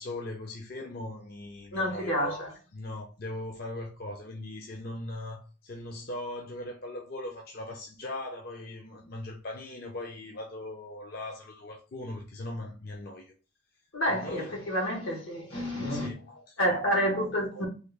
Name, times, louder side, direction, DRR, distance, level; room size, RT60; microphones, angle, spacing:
voice 1, 0.0-2.4 2.7-13.3 14.1-14.5 15.9-16.6, left 1 dB, 50° left, 0.5 m, -39 dB
voice 2, 1.7-2.5 13.9-16.1 16.6-17.7, equal, 85° left, 1.3 m, -29 dB
3.4 x 2.3 x 3.3 m
head